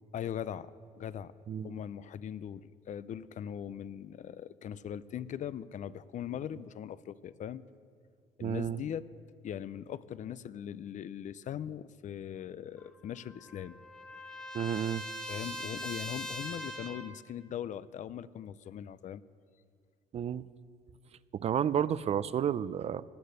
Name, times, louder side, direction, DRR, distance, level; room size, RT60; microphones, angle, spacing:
voice 1, 0.1-1.3 1.6-7.6 8.4-9.0 9.4-13.8 15.3-19.2, left 9 dB, 45° left, 17 dB, 0.5 m, -40 dB
voice 2, 1.5-1.8 8.4-8.8 14.5-15.1 20.1-20.5 21.3-23.0, right 9 dB, 40° right, 18 dB, 0.4 m, -31 dB
Trumpet, 12.8-17.2, left 1 dB, 5° left, 1.1 m, -42 dB
16.0 x 10.0 x 6.5 m, 2.2 s
cardioid pair, 110°, 17 cm